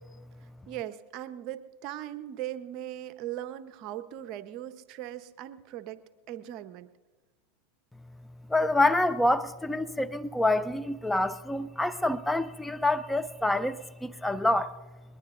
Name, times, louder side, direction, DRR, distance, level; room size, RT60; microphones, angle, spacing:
voice 1, 0.7-6.9, right 12 dB, 50° right, 11 dB, 0.8 m, -39 dB
voice 2, 8.5-14.7, left 2 dB, 5° left, 13 dB, 0.4 m, -27 dB
21.0 x 21.0 x 2.6 m, 1.2 s
hypercardioid pair, 105°, 0 cm